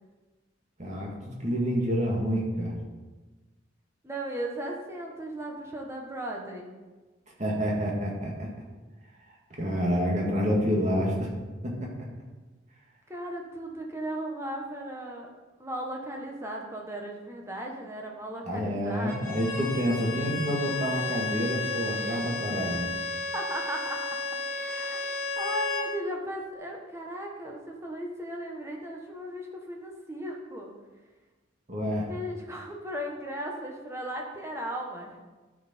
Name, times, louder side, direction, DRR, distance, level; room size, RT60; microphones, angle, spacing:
voice 1, 0.8-2.7 7.4-8.5 9.6-11.3 11.6-12.1 18.4-22.9 31.7-32.1, equal, 35° right, -2 dB, 1.9 m, -28 dB
voice 2, 4.0-6.7 13.1-15.3 15.6-19.2 22.7-22.8 23.3-24.2 24.5-30.7 32.1-35.2, right 1 dB, 15° right, 0 dB, 1.3 m, -36 dB
Bowed string instrument, 19.1-25.9, left 3 dB, 15° left, 2.8 m, -33 dB
11.5 x 6.4 x 4.4 m, 1.3 s
head